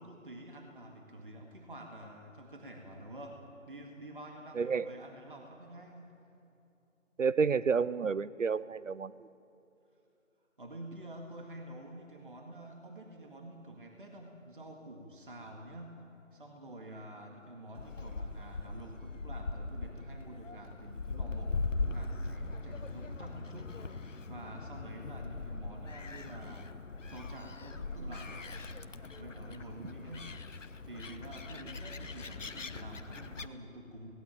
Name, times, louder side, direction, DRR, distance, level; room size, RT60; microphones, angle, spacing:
voice 1, 0.0-6.1 10.6-16.0 16.3-23.9 24.3-26.7 27.1-28.5 29.1-30.3 30.8-34.1, right 1 dB, 40° right, 2 dB, 2.0 m, -48 dB
voice 2, 4.6-4.9 7.2-9.3, right 5 dB, 70° right, 18 dB, 0.7 m, -30 dB
Gull seagull, 17.7-33.5, left 3 dB, 65° left, 1.2 m, -40 dB
18.0 x 17.0 x 9.1 m, 2.9 s
figure-of-eight pair, 175°, 40 cm